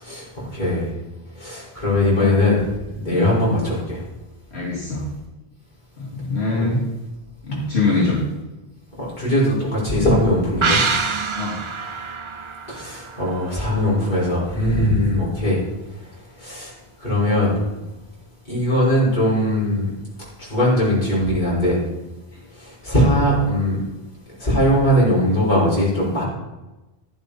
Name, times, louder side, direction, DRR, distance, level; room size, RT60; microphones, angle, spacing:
voice 1, 0.0-0.9 1.4-2.6 2.9-4.0 6.6-6.7 9.0-10.8 12.7-15.6 16.4-16.7 17.0-17.6 18.5-19.9 20.4-21.8 22.6-23.8 24.4-26.2, left 1 dB, 45° left, -7 dB, 5.7 m, -20 dB
voice 2, 4.5-5.1 6.0-6.8 7.4-8.2 11.4-11.6, left 3 dB, 75° left, -7 dB, 3.3 m, -23 dB
sound 1, 10.6-14.1 14.4-14.5, right 4 dB, 30° right, 0.7 m, -26 dB
12.5 x 11.5 x 4.3 m, 1.0 s
omnidirectional pair, 1.1 m